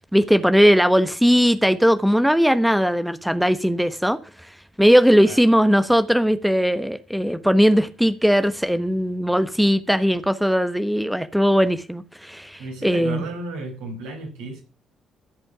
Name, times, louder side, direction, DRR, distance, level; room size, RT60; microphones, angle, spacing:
voice 1, 0.1-4.2 4.8-13.3, equal, ahead, 1.1 m, -19 dB
voice 2, 12.6-14.6, right 2 dB, 75° right, 5.3 m, -33 dB
14.5 x 8.2 x 5.9 m
figure-of-eight pair, 45°, 0 cm